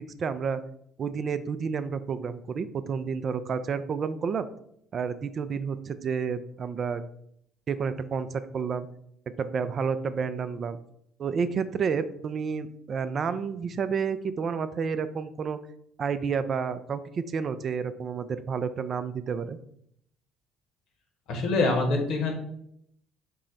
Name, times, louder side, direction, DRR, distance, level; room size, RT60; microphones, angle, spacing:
voice 1, 0.2-0.6 1.0-4.5 4.9-7.0 7.7-8.9 9.4-10.8 11.2-15.6 16.0-19.6, right 6 dB, 45° right, 12 dB, 0.3 m, -30 dB
voice 2, 21.3-22.3, left 3 dB, 65° left, 2 dB, 1.0 m, -25 dB
4.5 x 2.1 x 3.8 m, 0.70 s
hypercardioid pair, 55°, 0 cm